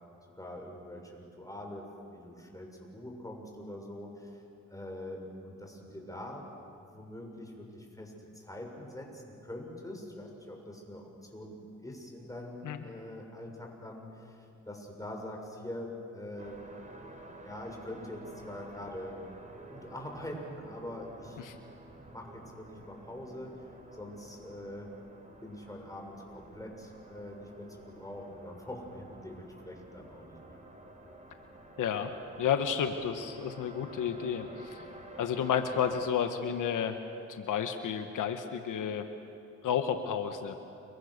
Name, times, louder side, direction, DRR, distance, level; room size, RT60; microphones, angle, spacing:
voice 1, 0.3-4.4 4.7-6.5 6.9-16.6 17.4-19.2 19.7-21.4 22.1-23.7 23.9-24.9 25.4-30.4, left 1 dB, 10° left, 1 dB, 7.0 m, -44 dB
sound 1, 16.4-36.1, right 2 dB, 25° right, 4.2 m, -51 dB
voice 2, 31.8-32.1 32.4-34.8 35.2-37.0 37.3-39.1 39.6-40.6, left 8 dB, 85° left, 7 dB, 1.3 m, -31 dB
29.5 x 24.0 x 6.7 m, 2.6 s
cardioid pair, 70°, 31 cm